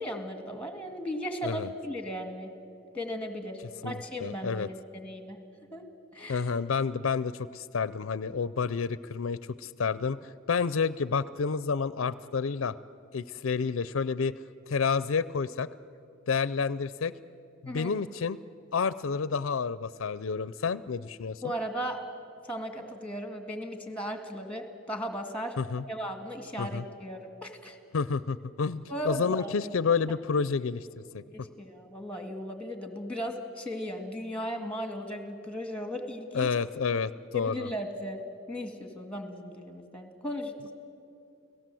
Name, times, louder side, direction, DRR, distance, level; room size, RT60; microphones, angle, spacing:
voice 1, 0.0-2.5 2.9-5.4 5.7-5.9 6.1-6.5 17.7-17.9 21.4-22.0 22.4-25.5 25.9-27.8 28.9-29.5 31.3-36.5 37.3-38.2 38.5-40.7, equal, 5° left, 6 dB, 2.1 m, -36 dB
voice 2, 3.8-4.7 6.3-12.8 13.1-14.3 14.7-15.7 16.3-17.1 17.6-18.4 18.7-21.4 25.6-25.8 26.6-26.8 27.9-30.9 31.1-31.2 36.3-37.7, left 5 dB, 75° left, 17 dB, 0.5 m, -29 dB
30.0 x 17.5 x 7.7 m, 2.6 s
head